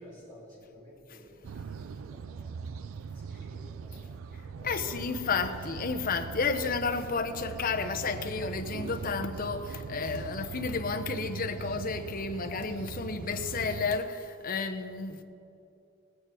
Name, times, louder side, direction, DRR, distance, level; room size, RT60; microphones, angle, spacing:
voice 1, 0.0-4.2 4.5-5.3 10.1-10.4, equal, 20° right, 3.0 m, -52 dB
sound 1, 1.4-14.0, right 5 dB, 75° right, 0.4 m, -41 dB
voice 2, 4.3-15.2, left 4 dB, 45° left, 0.8 m, -32 dB
19.0 x 8.8 x 4.4 m
head